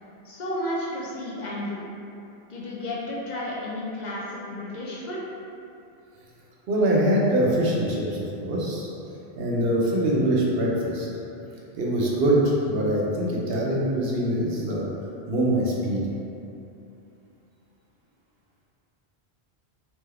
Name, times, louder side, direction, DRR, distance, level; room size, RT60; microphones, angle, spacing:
voice 1, 0.2-1.8 2.5-5.2, left 1 dB, 55° left, -5 dB, 0.5 m, -32 dB
voice 2, 6.7-8.9 9.4-11.1 11.7-14.9 15.3-16.0, right 1 dB, 70° right, -4 dB, 0.8 m, -23 dB
2.9 x 2.2 x 3.3 m, 2.7 s
omnidirectional pair, 1.1 m